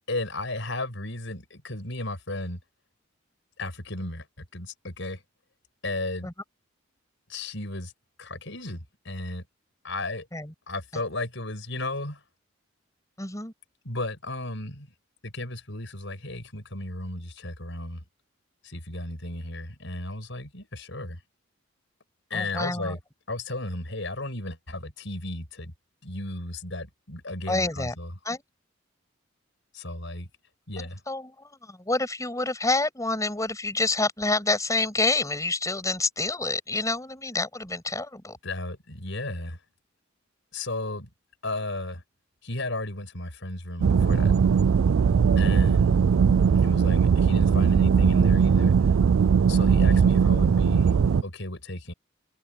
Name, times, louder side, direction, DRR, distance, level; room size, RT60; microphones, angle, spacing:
voice 1, 0.1-2.6 3.6-5.2 5.8-6.3 7.3-7.9 8.2-9.4 9.8-10.3 10.7-12.2 13.8-14.9 15.2-18.0 18.6-21.2 22.3-23.0 23.3-25.7 26.0-28.1 29.7-30.3 30.7-31.0 38.4-39.6 40.5-41.1 41.4-42.0 42.4-44.3 45.4-45.9 46.5-48.9 49.5-51.0 51.2-51.9, left 2 dB, 65° left, 7.9 m, -34 dB
voice 2, 13.2-13.5 22.3-23.0 27.5-27.9 28.2-28.4 31.1-38.4, left 2 dB, 15° left, 6.8 m, -28 dB
sound 1, 43.8-51.2, right 6 dB, 85° right, 0.4 m, -20 dB
head